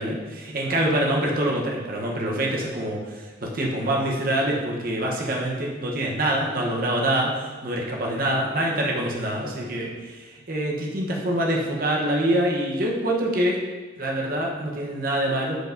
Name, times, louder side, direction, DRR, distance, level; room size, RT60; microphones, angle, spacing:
voice 1, 0.0-7.3 7.6-13.6 14.0-15.6, right 1 dB, 50° right, -2 dB, 1.0 m, -25 dB
7.9 x 4.7 x 2.6 m, 1.3 s
head